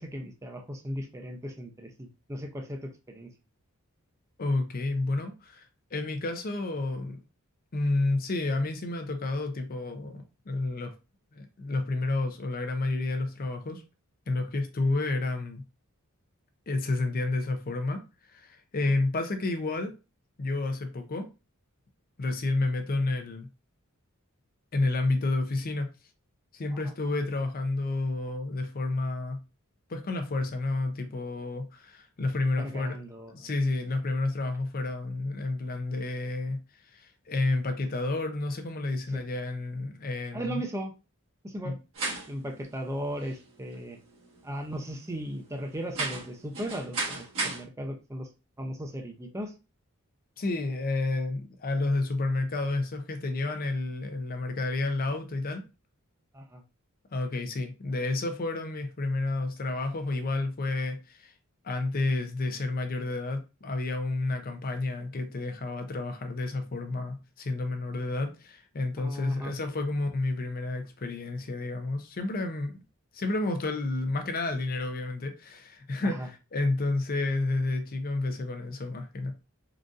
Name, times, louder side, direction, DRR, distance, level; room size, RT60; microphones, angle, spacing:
voice 1, 0.0-3.3 26.7-26.8 32.6-33.5 39.1-39.2 40.3-40.9 41.4-41.7 42.3-44.0 44.4-48.3 48.6-49.5 56.3-56.6 69.0-69.5 76.0-76.3, equal, 15° right, 0.5 m, -37 dB
voice 2, 4.4-5.6 5.9-7.2 7.7-10.9 11.3-13.8 14.3-15.6 16.7-18.0 18.3-19.9 20.4-21.3 22.2-23.5 24.7-25.9 26.5-29.4 29.9-33.0 33.3-36.6 36.9-40.6 41.6-41.8 50.4-55.6 57.1-61.3 61.6-72.8 73.1-79.3, left 2 dB, 40° left, 0.5 m, -30 dB
sound 1, 41.9-47.6, right 3 dB, 65° right, 1.4 m, -37 dB
3.8 x 2.5 x 2.4 m
head